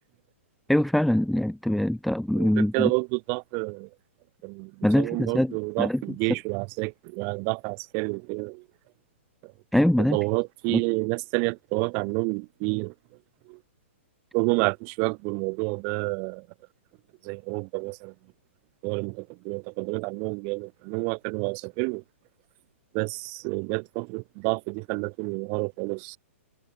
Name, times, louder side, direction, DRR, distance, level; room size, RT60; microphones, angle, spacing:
voice 1, 0.7-2.9 4.8-6.0 9.7-10.2 10.7-10.8, left 1 dB, ahead, 0.8 m, -23 dB
voice 2, 2.3-3.9 4.4-8.6 9.4-9.5 10.0-12.9 13.4-13.6 14.3-16.5 17.2-18.1 18.8-22.0 22.9-26.2, right 38 dB, 25° right, 1.5 m, -29 dB
hypercardioid pair, 175°, 7 cm